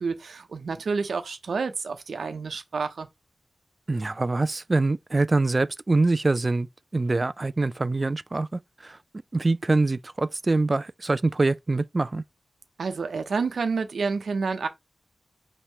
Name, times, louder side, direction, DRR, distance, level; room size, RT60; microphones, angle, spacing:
voice 1, 0.0-3.1 12.8-14.7, right 4 dB, 80° right, 0.8 m, -29 dB
voice 2, 3.9-6.7 6.9-9.0 9.3-12.2, right 3 dB, 35° right, 0.3 m, -24 dB
5.6 x 3.0 x 3.1 m
wide cardioid pair, 90°, 0 cm